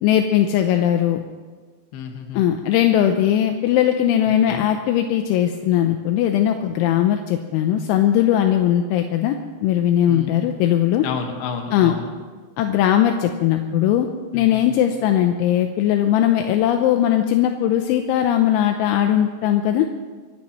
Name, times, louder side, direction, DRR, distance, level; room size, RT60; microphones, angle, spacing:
voice 1, 0.0-1.2 2.3-11.1 11.7-12.0 12.6-19.9, left 11 dB, 80° left, 5 dB, 3.0 m, -19 dB
voice 2, 1.9-2.4 4.5-4.6 10.1-10.4 11.0-12.1 14.3-14.8, left 6 dB, 65° left, 3 dB, 3.1 m, -31 dB
24.5 x 16.0 x 3.1 m, 1.5 s
omnidirectional pair, 5.6 m